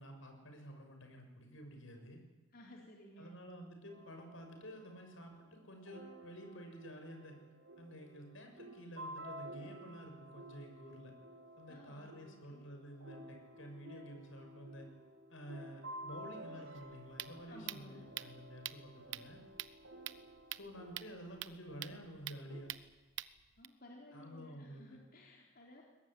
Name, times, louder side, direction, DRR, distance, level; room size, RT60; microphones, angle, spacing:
voice 1, 0.0-2.2 3.2-7.4 7.8-11.1 11.6-14.9 15.3-19.4 20.5-22.7 24.1-25.0, equal, 75° left, 4 dB, 6.6 m, -51 dB
voice 2, 2.5-3.3 11.7-12.6 17.5-18.0 23.6-25.8, left 1 dB, 50° left, -2 dB, 3.9 m, -56 dB
sound 1, 3.9-22.6, right 1 dB, 80° right, 5.8 m, -53 dB
sound 2, 16.7-23.7, right 12 dB, 60° right, 0.9 m, -47 dB
22.5 x 20.0 x 9.8 m, 1.2 s
head